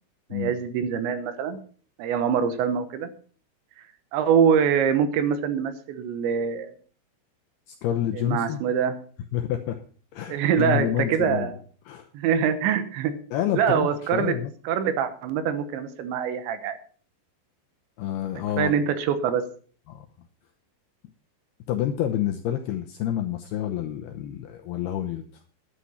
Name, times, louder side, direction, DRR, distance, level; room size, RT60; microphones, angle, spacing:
voice 1, 0.3-1.6 2.0-3.1 4.1-6.7 8.1-9.0 10.3-11.6 12.1-13.1 13.5-14.4 14.6-16.8 18.6-19.4, right 7 dB, 75° right, 10 dB, 3.2 m, -24 dB
voice 2, 7.7-8.6 9.3-9.8 10.1-11.5 11.9-12.1 13.3-14.5 18.0-18.8 19.9-20.1 21.7-25.2, left 11 dB, 80° left, 5 dB, 2.3 m, -28 dB
11.5 x 10.0 x 5.6 m, 0.43 s
omnidirectional pair, 5.6 m